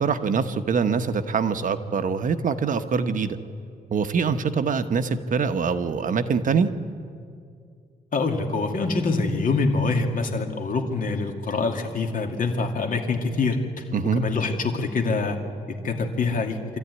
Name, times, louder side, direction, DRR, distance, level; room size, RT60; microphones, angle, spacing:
voice 1, 0.0-3.4 3.9-6.7 13.9-14.2, right 5 dB, 55° right, 9 dB, 1.1 m, -24 dB
voice 2, 8.1-13.6 14.2-15.4 15.8-16.6, left 3 dB, 60° left, 3 dB, 2.4 m, -25 dB
26.0 x 14.0 x 9.7 m, 2.3 s
cardioid pair, 115°, 16 cm